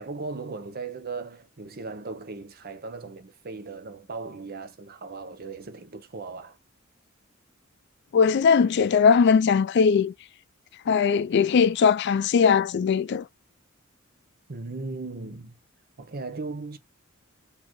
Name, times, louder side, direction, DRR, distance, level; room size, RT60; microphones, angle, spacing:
voice 1, 0.0-6.6 14.5-15.6 16.0-16.8, right 3 dB, 45° right, 0.7 m, -37 dB
voice 2, 8.1-10.1 10.9-13.3, left 6 dB, 55° left, 0.4 m, -20 dB
4.2 x 2.8 x 3.0 m
head